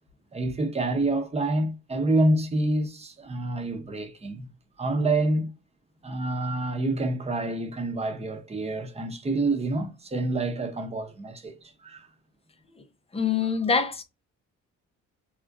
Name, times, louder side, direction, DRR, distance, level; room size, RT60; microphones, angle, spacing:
voice 1, 0.3-4.5 4.8-5.5 6.0-12.1, right 2 dB, 20° right, 0.8 m, -27 dB
voice 2, 13.1-14.0, left 5 dB, 20° left, 0.6 m, -24 dB
3.5 x 2.4 x 2.5 m
cardioid pair, 90°, 30 cm